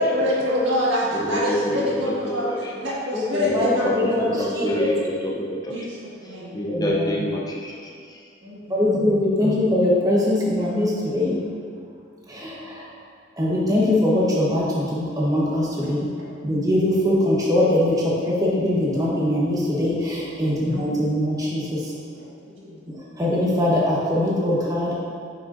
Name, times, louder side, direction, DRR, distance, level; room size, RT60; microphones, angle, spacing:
voice 1, 0.0-4.8 5.7-6.5 8.4-9.0 9.4-9.5 16.2-16.3 20.5-20.8 22.2-22.3 22.6-22.8, equal, 65° right, -6 dB, 1.7 m, -27 dB
voice 2, 1.1-2.1 2.5-2.7 3.4-3.9 4.2-5.9 6.5-7.9, left 1 dB, 20° left, -3 dB, 0.6 m, -27 dB
voice 3, 3.1-4.2 4.6-4.9 6.7-7.3 8.7-11.4 12.3-12.8 13.4-16.1 16.4-21.8 23.2-24.9, left 1 dB, 20° right, -6 dB, 1.1 m, -22 dB
8.8 x 6.2 x 2.6 m, 2.2 s
head